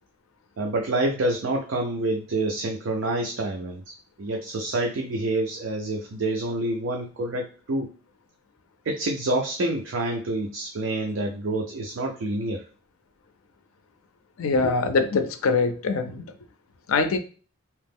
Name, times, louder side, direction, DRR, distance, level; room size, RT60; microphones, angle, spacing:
voice 1, 0.6-3.8 4.2-7.9 8.9-12.6, right 2 dB, 65° right, 2 dB, 0.4 m, -27 dB
voice 2, 14.4-16.2 16.9-17.2, left 4 dB, 80° left, 8 dB, 0.4 m, -23 dB
2.9 x 2.0 x 3.5 m, 0.36 s
head